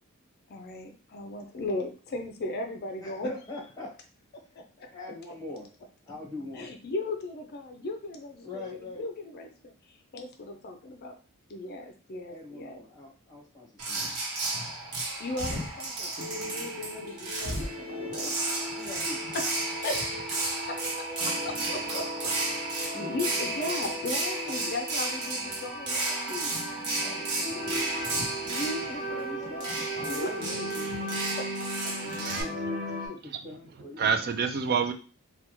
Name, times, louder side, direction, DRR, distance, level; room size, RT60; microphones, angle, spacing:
voice 1, 0.5-3.3 4.6-4.9 6.5-11.2 11.5-12.8 15.2-18.3 19.3-22.3 22.8-26.5 28.5-30.3 31.3-31.4, left 2 dB, 45° left, 5 dB, 0.4 m, -37 dB
voice 2, 3.0-3.9 4.9-5.7 6.1-6.8 8.4-9.1 12.3-15.2 18.0-18.4 18.8-19.2 22.9-23.1 24.4-24.7 27.0-27.9 29.1-31.2 31.9-34.3, left 3 dB, 15° left, -3 dB, 1.1 m, -43 dB
sound 1, 13.8-32.4, right 2 dB, 80° right, 1.0 m, -33 dB
sound 2, 16.2-33.1, equal, 15° right, 1.6 m, -37 dB
voice 3, 32.3-32.7 34.0-34.9, right 6 dB, 45° right, 8 dB, 0.4 m, -28 dB
3.4 x 2.3 x 3.0 m, 0.37 s
head